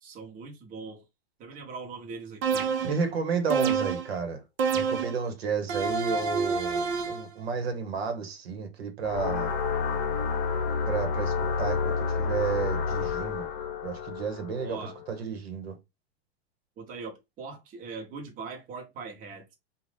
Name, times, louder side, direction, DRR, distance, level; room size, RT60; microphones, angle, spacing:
voice 1, 0.0-1.0 1.4-2.7 14.6-15.0 16.8-19.5, right 4 dB, 25° right, 0.9 m, -41 dB
sound 1, 2.4-3.1 3.5-4.1 4.6-5.2 5.7-7.3, right 5 dB, 70° right, 0.7 m, -27 dB
voice 2, 2.8-4.4 4.7-9.5 10.9-13.5 13.8-14.8 15.1-15.8, right 5 dB, 90° right, 1.1 m, -32 dB
Warrior Horn (processed), 9.0-15.1, left 5 dB, 60° left, 0.7 m, -29 dB
2.6 x 2.3 x 3.3 m
hypercardioid pair, 130°, 30 cm